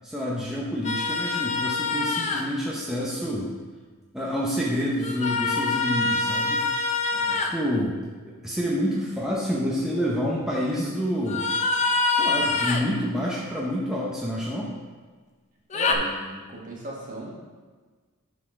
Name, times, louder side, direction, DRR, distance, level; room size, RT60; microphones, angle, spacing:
voice 1, 0.0-3.5 4.1-6.7 7.4-8.0 8.2-11.5 12.1-14.7, equal, 5° right, -5 dB, 0.7 m, -28 dB
sound 1, 0.8-2.4 5.0-7.5 11.3-12.9 15.7-15.9, left 3 dB, 30° left, 0.6 m, -25 dB
voice 2, 7.1-7.4 15.7-17.3, right 1 dB, 35° right, -3 dB, 1.6 m, -37 dB
11.0 x 4.1 x 3.7 m, 1.4 s
head